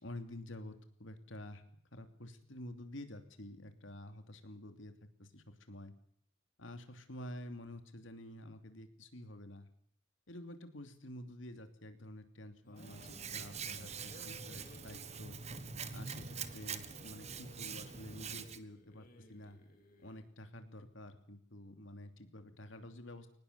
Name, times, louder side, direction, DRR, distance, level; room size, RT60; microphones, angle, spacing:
voice 1, 0.0-1.6 1.9-4.9 5.2-5.9 6.6-9.7 10.3-15.4 15.9-19.6 20.0-23.4, left 1 dB, 65° left, 8 dB, 2.9 m, -49 dB
sound 1, 12.6-20.3, left 1 dB, 45° left, 3.6 m, -59 dB
Hands, 12.8-18.6, right 6 dB, 35° right, 1.4 m, -44 dB
23.0 x 19.5 x 6.9 m, 0.65 s
head